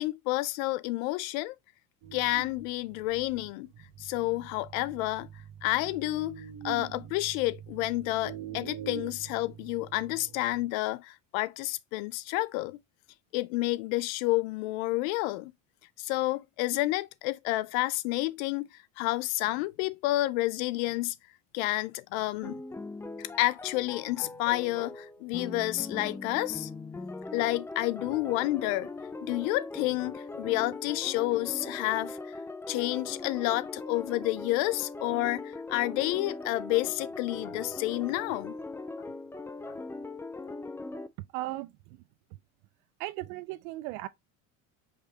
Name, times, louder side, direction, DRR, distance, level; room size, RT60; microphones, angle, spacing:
voice 1, 0.0-1.6 2.1-3.7 4.0-5.3 5.6-12.8 13.3-15.5 16.0-21.1 21.5-22.6 23.2-26.7 27.3-28.9 29.2-32.4 32.7-38.5 39.7-39.8, left 18 dB, 80° left, 0.6 m, -30 dB
sound 1, 2.0-10.7, right 9 dB, 60° right, 1.1 m, -45 dB
sound 2, 22.4-41.1, left 2 dB, 5° left, 0.3 m, -40 dB
voice 2, 41.3-42.0 43.0-44.1, right 18 dB, 80° right, 0.7 m, -37 dB
5.3 x 3.1 x 2.9 m
supercardioid pair, 100°, 40 cm